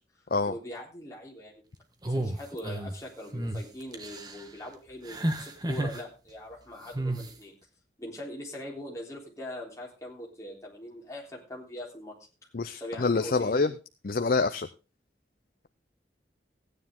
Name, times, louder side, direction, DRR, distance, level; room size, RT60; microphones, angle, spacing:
voice 1, 0.5-1.5 2.1-7.5 8.0-12.1 12.8-13.7, left 1 dB, 15° left, -2 dB, 3.5 m, -41 dB
sound 1, 2.0-2.9 3.3-3.6 3.9-4.4 5.1-6.0 6.9-7.3, right 1 dB, 25° right, 1.2 m, -31 dB
voice 2, 12.5-13.7 14.0-14.7, left 4 dB, 50° left, 10 dB, 0.5 m, -26 dB
15.5 x 9.6 x 3.7 m, 0.31 s
head